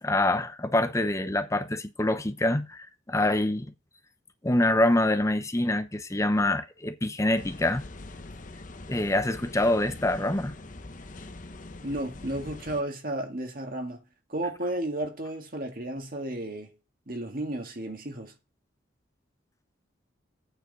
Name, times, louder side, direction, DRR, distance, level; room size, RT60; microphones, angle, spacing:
voice 1, 0.0-3.7 4.4-7.8 8.9-10.6, left 1 dB, 15° left, 0.8 m, -25 dB
sound 1, 7.4-12.8, left 2 dB, 45° left, 0.9 m, -43 dB
voice 2, 11.8-14.0 14.3-16.8 17.1-18.3, right 1 dB, 50° right, 2.0 m, -33 dB
8.9 x 5.0 x 7.8 m
head